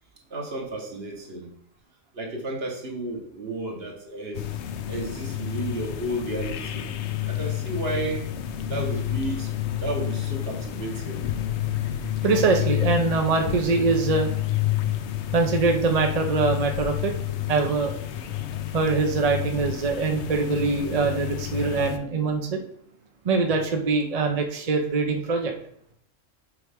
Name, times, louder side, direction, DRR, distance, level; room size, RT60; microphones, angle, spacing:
voice 1, 0.3-1.5 2.1-4.5 4.9-6.9 7.3-8.3 8.7-9.5 9.8-11.3, right 2 dB, 55° right, 1 dB, 1.6 m, -32 dB
sound 1, 4.3-22.0, left 12 dB, 70° left, 0.8 m, -30 dB
voice 2, 12.2-14.3 15.3-17.1 17.5-17.9 18.7-22.6 23.2-25.5, right 4 dB, 40° right, 3 dB, 0.6 m, -23 dB
6.9 x 4.6 x 3.5 m, 0.66 s
omnidirectional pair, 1.3 m